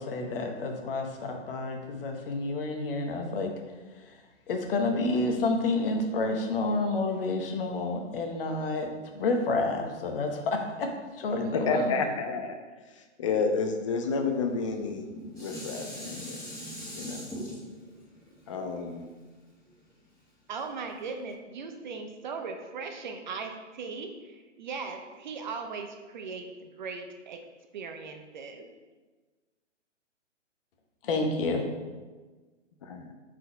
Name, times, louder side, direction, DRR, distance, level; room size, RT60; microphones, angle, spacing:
voice 1, 0.0-3.5 4.0-4.1 4.5-12.0 31.0-31.6, left 2 dB, 50° left, 3 dB, 1.1 m, -29 dB
voice 2, 11.5-12.6 13.0-15.1 15.4-16.4 16.9-17.3 18.5-19.1 32.8-33.1, left 4 dB, 25° left, 6 dB, 0.5 m, -30 dB
Dishes pots and pans, 14.8-20.0 20.6-20.7, equal, 10° left, 1.6 m, -41 dB
voice 3, 20.5-27.4 27.7-28.7, right 4 dB, 40° right, 5 dB, 0.6 m, -38 dB
4.6 x 4.0 x 5.1 m, 1.3 s
hypercardioid pair, 140°, 36 cm